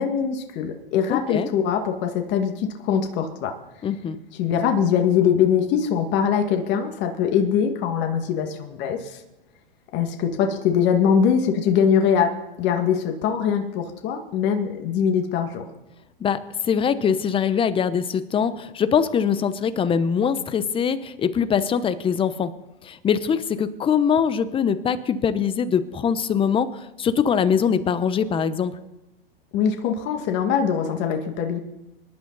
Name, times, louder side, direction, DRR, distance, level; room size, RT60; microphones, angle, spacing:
voice 1, 0.0-3.5 4.4-9.2 9.9-12.3 12.6-15.7 29.5-31.6, left 7 dB, 35° left, 4 dB, 2.1 m, -22 dB
voice 2, 1.1-1.5 3.8-4.2 16.2-22.5 22.8-28.7, left 7 dB, 15° left, 13 dB, 0.9 m, -22 dB
25.5 x 11.5 x 4.1 m, 0.97 s
hypercardioid pair, 120°, 30 cm